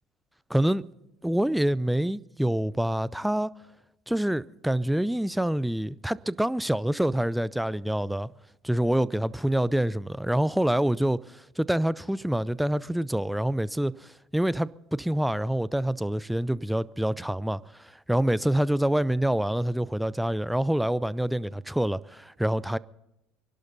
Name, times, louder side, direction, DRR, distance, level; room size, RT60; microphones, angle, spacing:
voice 1, 0.5-0.8 1.2-3.5 4.1-8.3 8.6-11.2 11.6-17.6 18.1-22.8, right 1 dB, 5° right, 0.5 m, -26 dB
25.5 x 12.0 x 4.1 m
hypercardioid pair, 70°, 0 cm